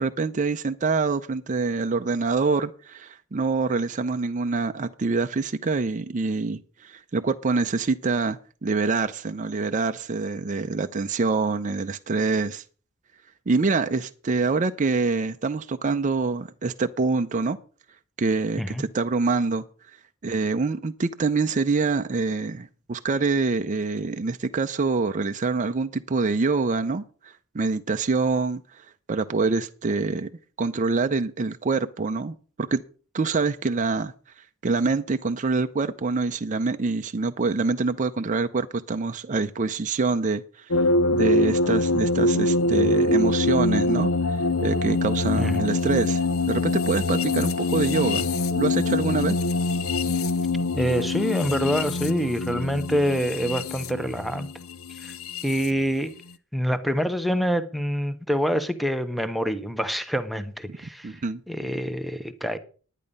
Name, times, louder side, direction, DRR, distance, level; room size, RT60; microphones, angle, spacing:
voice 1, 0.0-12.6 13.5-17.6 18.2-19.6 20.2-28.8 29.1-30.3 30.6-32.8 33.1-34.1 34.6-40.8 41.1-46.2 46.5-48.3 48.6-49.4 60.7-60.8 61.0-61.4, right 4 dB, 35° right, 0.5 m, -25 dB
sound 1, 40.7-55.7, left 2 dB, 75° left, 0.7 m, -24 dB
voice 2, 45.4-45.7 50.7-54.5 55.0-55.1 55.4-56.1 56.5-62.6, equal, ahead, 0.9 m, -26 dB
10.5 x 9.9 x 5.3 m
head